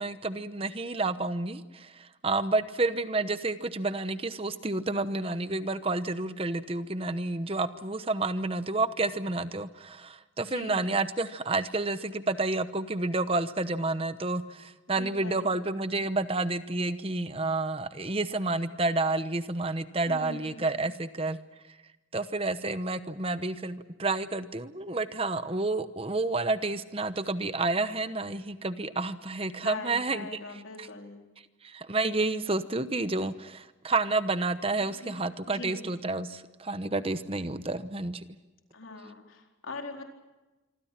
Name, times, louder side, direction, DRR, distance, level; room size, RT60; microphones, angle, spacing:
voice 1, 0.0-21.4 22.1-30.3 31.6-38.2, right 2 dB, 30° right, 12 dB, 0.9 m, -30 dB
voice 2, 10.4-10.9 14.9-15.6 20.1-20.8 29.6-31.2 34.8-35.9 38.7-40.0, left 3 dB, 90° left, 3 dB, 4.1 m, -42 dB
26.0 x 25.0 x 5.9 m, 1.1 s
head